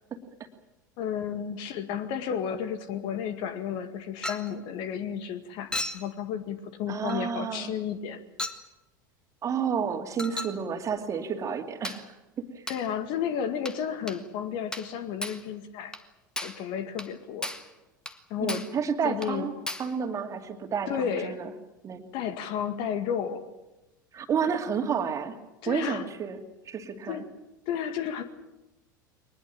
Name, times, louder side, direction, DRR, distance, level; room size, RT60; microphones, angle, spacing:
voice 1, 1.0-8.2 12.7-15.9 16.4-17.5 18.3-18.7 19.0-19.5 20.9-21.4 22.1-23.4 25.6-26.0 27.1-27.3 27.7-28.2, left 8 dB, 50° left, 10 dB, 2.1 m, -32 dB
Chink clink, 4.2-4.5 5.7-6.1 7.1-7.3 8.4-8.7 10.2-10.6 11.8-12.1 12.7-12.9 13.7-13.8 14.1-14.2 14.7-14.9 15.2-15.5 15.9-16.1 16.4-16.6 17.0-17.1 17.4-17.7 18.1-18.2 18.5-18.8 19.2-19.3 19.7-19.9, left 1 dB, 5° left, 1.6 m, -35 dB
voice 2, 6.9-7.7 9.4-12.7 18.4-21.5 21.8-22.0 24.1-25.4 25.7-26.4 26.7-27.2, right 6 dB, 30° right, 6 dB, 2.6 m, -31 dB
23.0 x 20.0 x 8.9 m, 1.0 s
figure-of-eight pair, 75°, 11 cm